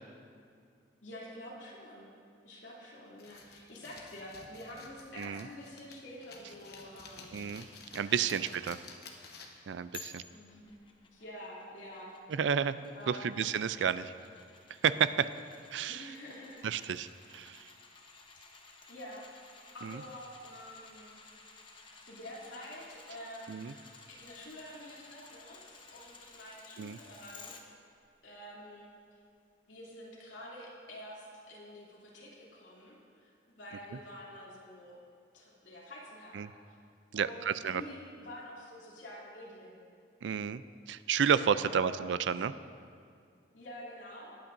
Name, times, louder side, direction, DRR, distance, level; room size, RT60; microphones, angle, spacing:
voice 1, 1.0-2.1 2.4-7.5 8.1-8.6 10.3-10.8 11.0-12.1 12.9-13.3 15.9-16.6 18.9-19.3 19.7-21.2 22.1-23.8 24.1-27.5 28.2-28.9 29.7-34.9 35.3-36.8 37.1-39.8 41.6-42.1 43.5-44.3, equal, 80° left, -5 dB, 2.8 m, -48 dB
sound 1, 3.2-9.7, left 4 dB, 60° left, 1.1 m, -52 dB
voice 2, 7.3-7.7 7.9-8.8 9.7-10.2 12.3-12.8 13.1-14.1 14.8-15.3 15.7-16.1 16.6-17.7 19.8-20.0 23.5-23.7 26.8-27.0 36.3-36.5 37.1-37.8 40.2-42.5, right 7 dB, 75° right, 14 dB, 0.4 m, -31 dB
sound 2, 9.9-27.6 28.0-28.1, left 4 dB, 25° left, 0.8 m, -55 dB
20.5 x 8.8 x 2.6 m, 2.3 s
head